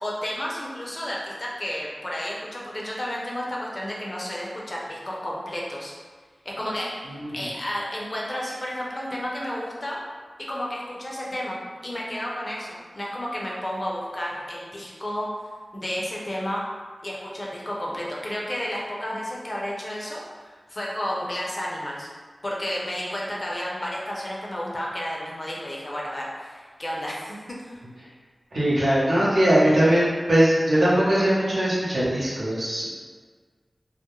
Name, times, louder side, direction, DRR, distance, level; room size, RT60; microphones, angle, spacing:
voice 1, 0.0-5.9 6.4-10.0 10.5-15.3 15.7-16.6 17.0-22.1 22.4-27.4 27.6-27.8, equal, 45° left, -4 dB, 0.5 m, -32 dB
voice 2, 7.1-7.5 28.5-32.9, right 1 dB, 85° right, -9 dB, 0.8 m, -21 dB
2.3 x 2.0 x 2.9 m, 1.5 s
wide cardioid pair, 55°, 0 cm